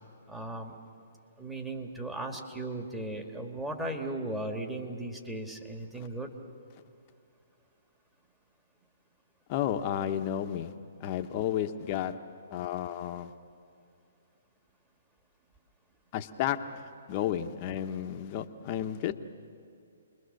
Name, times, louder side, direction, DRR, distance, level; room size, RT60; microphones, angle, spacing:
voice 1, 0.3-0.8 1.4-6.3, right 1 dB, 5° right, 2 dB, 2.0 m, -37 dB
voice 2, 9.5-10.7 11.0-12.2 12.5-13.3 16.1-16.8 17.1-19.1, left 10 dB, 35° left, 7 dB, 1.1 m, -32 dB
29.5 x 21.5 x 6.7 m, 2.5 s
hypercardioid pair, 145°, 0 cm